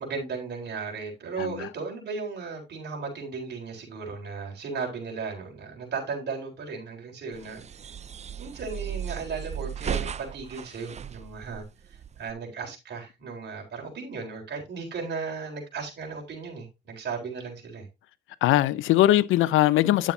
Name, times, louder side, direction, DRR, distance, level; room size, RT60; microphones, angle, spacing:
voice 1, 0.0-7.6 8.4-17.9, right 5 dB, 60° right, 3.9 m, -36 dB
voice 2, 1.4-1.7 18.4-20.1, left 14 dB, 85° left, 0.6 m, -21 dB
sound 1, 7.3-12.3, right 8 dB, 35° right, 0.5 m, -36 dB
10.0 x 7.3 x 2.7 m
cardioid pair, 90°, 20 cm